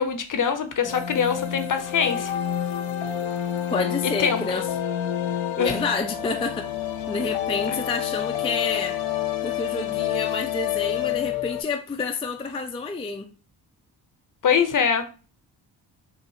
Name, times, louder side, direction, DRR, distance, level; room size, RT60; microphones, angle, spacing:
voice 1, 0.0-2.3 4.2-4.4 5.6-5.7 14.4-15.1, left 7 dB, 40° left, 0.7 m, -23 dB
sound 1, 0.8-11.6, left 10 dB, 75° left, 0.6 m, -28 dB
voice 2, 3.7-4.7 5.6-6.7 7.1-9.0 9.4-13.3, left 4 dB, 15° left, 0.4 m, -29 dB
4.0 x 2.4 x 2.7 m
supercardioid pair, 50°, 48 cm